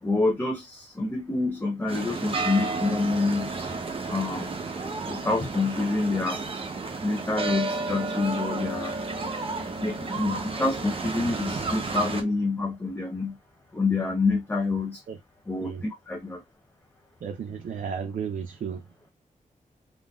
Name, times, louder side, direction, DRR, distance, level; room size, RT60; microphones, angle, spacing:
voice 1, 0.0-3.5 4.1-4.6 5.1-6.4 7.0-9.0 9.8-13.4 13.7-15.0 15.5-16.4, left 3 dB, 15° left, 0.5 m, -27 dB
sound 1, 1.9-12.2, right 3 dB, 40° right, 0.7 m, -32 dB
voice 2, 17.2-18.8, right 6 dB, 85° right, 0.5 m, -33 dB
3.6 x 2.5 x 2.3 m
wide cardioid pair, 145°, 14 cm